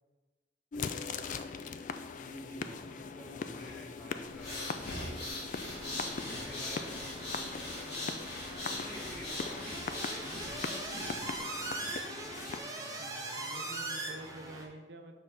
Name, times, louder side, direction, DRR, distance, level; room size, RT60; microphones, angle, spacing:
sound 1, 0.7-12.6, left 5 dB, 45° left, 0.3 m, -41 dB
voice 1, 2.2-5.3 6.2-7.9 8.6-10.8, equal, 5° left, -6 dB, 1.6 m, -50 dB
sound 2, 4.3-11.4, left 1 dB, 65° left, 2.4 m, -41 dB
sound 3, 5.6-14.6, right 2 dB, 20° right, 0.9 m, -42 dB
voice 2, 12.4-15.2, right 2 dB, 65° right, 6 dB, 0.6 m, -49 dB
6.9 x 5.5 x 3.7 m, 1.2 s
head